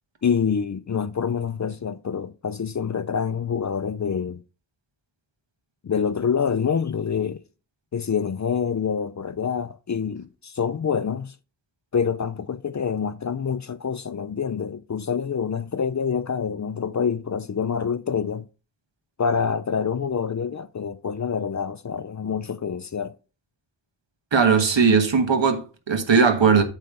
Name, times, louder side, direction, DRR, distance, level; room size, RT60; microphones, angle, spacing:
voice 1, 0.2-4.4 5.8-7.4 7.9-11.4 11.9-18.5 19.2-23.2, left 6 dB, 40° left, 0.4 m, -26 dB
voice 2, 24.3-26.6, right 5 dB, 70° right, 1.3 m, -18 dB
8.5 x 3.3 x 6.6 m
wide cardioid pair, 65°, 46 cm